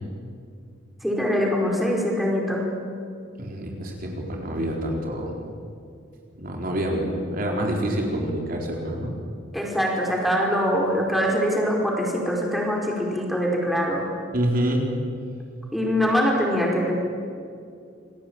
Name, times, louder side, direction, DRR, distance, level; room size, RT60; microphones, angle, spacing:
voice 1, 1.0-2.6 9.5-14.1 15.7-16.9, equal, ahead, -2 dB, 5.0 m, -23 dB
voice 2, 3.4-5.4 6.3-9.1 14.3-14.9, right 1 dB, 50° right, 0 dB, 4.3 m, -27 dB
28.0 x 21.5 x 9.0 m, 2.4 s
head